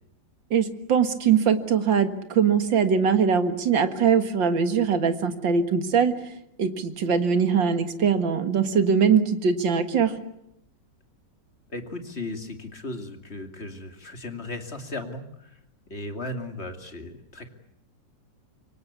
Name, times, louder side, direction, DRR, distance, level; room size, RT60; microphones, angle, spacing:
voice 1, 0.5-6.1 6.6-10.2, right 6 dB, 80° right, 9 dB, 2.4 m, -22 dB
voice 2, 11.7-15.6 15.9-17.5, left 2 dB, 35° left, 6 dB, 2.9 m, -36 dB
26.0 x 24.0 x 8.3 m, 0.78 s
omnidirectional pair, 2.0 m